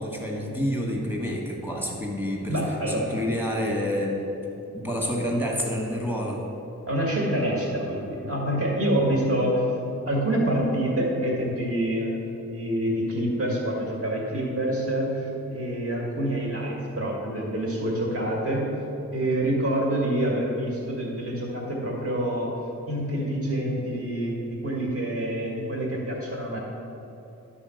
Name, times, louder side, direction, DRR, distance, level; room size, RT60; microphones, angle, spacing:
voice 1, 0.0-2.6 3.1-4.1 4.7-6.4, equal, 5° right, -1 dB, 1.5 m, -28 dB
voice 2, 2.5-3.2 6.9-9.6 10.1-12.2 12.4-18.7 19.1-22.5 22.9-26.6, right 1 dB, 50° right, -3 dB, 1.9 m, -26 dB
10.5 x 4.2 x 6.4 m, 2.8 s
wide cardioid pair, 110°, 29 cm